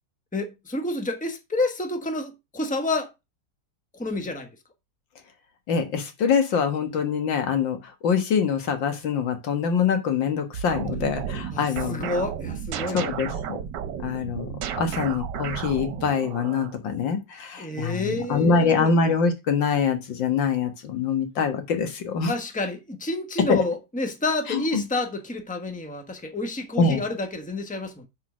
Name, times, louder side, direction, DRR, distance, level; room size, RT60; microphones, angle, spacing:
voice 1, 0.3-3.1 3.9-4.5 11.5-13.5 17.6-18.9 22.3-28.1, left 2 dB, 5° left, 1.1 m, -29 dB
voice 2, 5.7-7.8 8.0-12.1 12.9-13.6 14.0-14.5 14.8-22.3 23.5-23.6 24.5-24.8 26.8-27.0, left 5 dB, 90° left, 2.2 m, -24 dB
sound 1, 10.5-16.7, right 8 dB, 70° right, 1.5 m, -33 dB
6.2 x 5.6 x 6.2 m
omnidirectional pair, 2.0 m